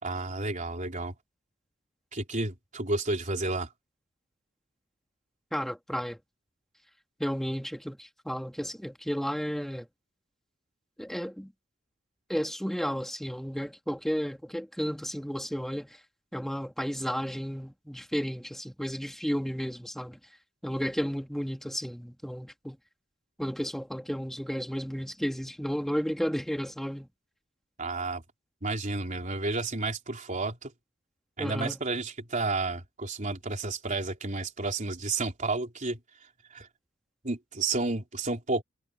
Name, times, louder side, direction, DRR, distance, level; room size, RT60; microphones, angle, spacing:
voice 1, 0.0-1.1 2.1-3.7 27.8-28.2 28.6-30.7 31.4-36.0 36.5-36.7 37.2-38.6, right 3 dB, 40° right, 3.7 m, -31 dB
voice 2, 5.5-6.2 7.2-9.9 11.0-11.5 12.3-16.0 16.3-20.2 20.6-22.8 23.4-27.1 31.4-31.8, equal, ahead, 2.1 m, -33 dB
head